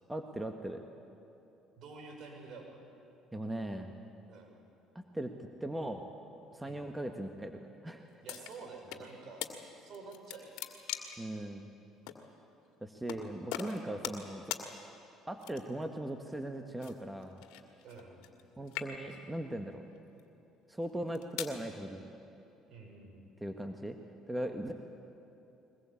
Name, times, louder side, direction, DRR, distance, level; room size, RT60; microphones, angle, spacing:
voice 1, 0.1-0.8 3.3-3.9 5.1-5.3 5.6-6.1 6.5-8.1 11.2-11.7 12.8-14.5 15.3-17.4 18.6-19.8 20.7-22.1 23.4-24.0 24.3-24.7, right 1 dB, 10° right, 5 dB, 1.7 m, -39 dB
voice 2, 1.8-2.8 4.3-4.6 6.6-6.9 8.2-9.4 9.8-10.6 13.8-14.0 17.8-18.2 19.1-19.2 22.7-23.2, right 4 dB, 60° right, 2 dB, 5.9 m, -49 dB
sound 1, 8.3-9.0 9.4-9.5 9.9-11.3 12.1-12.2 13.1-13.2 13.5-14.3 14.5-14.7 15.4-15.8 16.8-18.4 18.7-19.3 20.0-20.2 20.9-21.6, left 12 dB, 75° left, 2.0 m, -41 dB
22.0 x 20.5 x 8.6 m, 2.9 s
hypercardioid pair, 65°, 0 cm